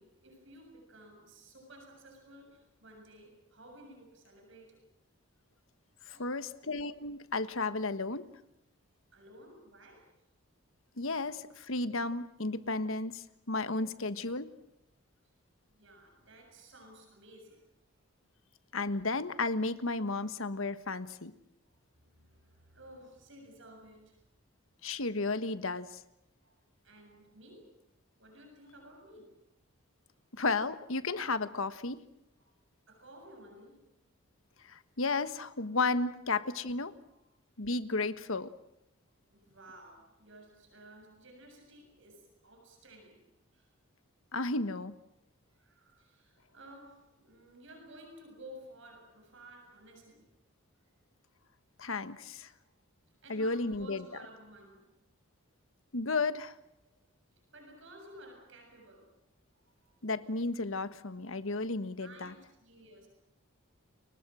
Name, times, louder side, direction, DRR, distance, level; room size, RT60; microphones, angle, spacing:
voice 1, 0.0-4.9 6.1-6.6 9.1-10.1 15.7-17.7 21.7-24.2 26.4-27.8 28.2-29.4 30.1-30.2 32.4-32.5 32.9-33.9 36.6-36.8 37.1-37.2 39.3-43.3 43.5-43.7 45.5-50.3 50.7-51.0 52.6-52.7 53.1-55.0 56.8-56.9 57.5-59.2 59.6-59.9 62.0-63.1, right 1 dB, 60° right, 3 dB, 7.3 m, -55 dB
voice 2, 6.2-8.3 11.0-14.5 18.7-21.3 24.8-26.0 30.3-32.0 34.6-36.9 37.6-38.5 44.3-44.9 51.8-52.5 53.3-54.0 55.9-56.6 60.0-62.3, left 3 dB, 70° left, 12 dB, 1.4 m, -33 dB
30.0 x 23.5 x 6.3 m, 0.80 s
head